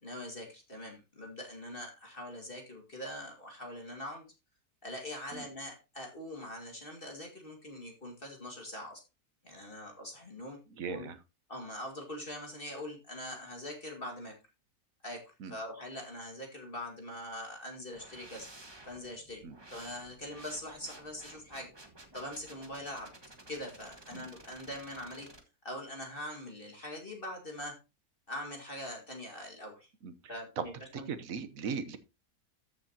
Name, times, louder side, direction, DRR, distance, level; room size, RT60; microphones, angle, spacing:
voice 1, 0.0-4.3 4.8-9.0 9.4-10.6 10.9-11.1 11.5-14.4 15.0-18.5 18.9-19.4 19.7-21.7 22.1-23.1 23.5-25.3 25.6-27.8 28.3-29.9 30.3-31.1, left 1 dB, 35° left, 1 dB, 2.3 m, -43 dB
voice 2, 10.7-11.2 15.4-15.5 19.4-19.6 24.1-24.3 30.0-30.1 30.6-30.7 30.9-32.0, right 6 dB, 65° right, 11 dB, 1.3 m, -38 dB
sound 1, 17.9-25.4, right 2 dB, 15° right, 1.4 m, -54 dB
13.5 x 6.8 x 2.8 m, 0.28 s
omnidirectional pair, 1.6 m